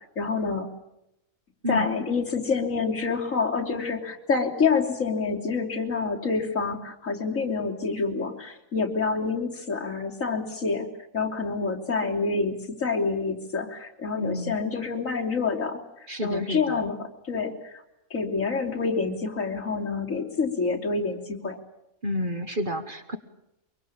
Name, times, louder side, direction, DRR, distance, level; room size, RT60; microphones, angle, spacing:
voice 1, 0.2-0.7 1.7-10.9 11.1-15.8 16.2-17.8 18.1-21.6, left 4 dB, 60° left, 0 dB, 3.6 m, -27 dB
voice 2, 14.2-14.6 16.1-16.8 22.0-23.2, left 1 dB, 35° right, 8 dB, 1.6 m, -30 dB
24.0 x 23.5 x 8.8 m, 0.84 s
omnidirectional pair, 1.5 m